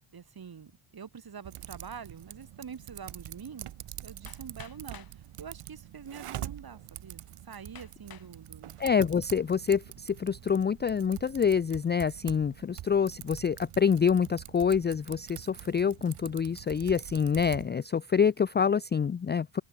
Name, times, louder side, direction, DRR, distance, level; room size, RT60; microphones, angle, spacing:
voice 1, 0.1-3.7 4.0-8.8, right 6 dB, 45° right, 3.8 m, -46 dB
Typing, 1.4-17.7, right 12 dB, 85° right, 2.2 m, -45 dB
Hammer, 4.3-5.2 6.1-6.2 6.8-6.9 7.7-8.3 8.9-9.4, left 8 dB, 45° left, 1.5 m, -51 dB
voice 2, 8.8-19.6, left 7 dB, 25° left, 0.4 m, -26 dB
open air
cardioid pair, 105°, 50 cm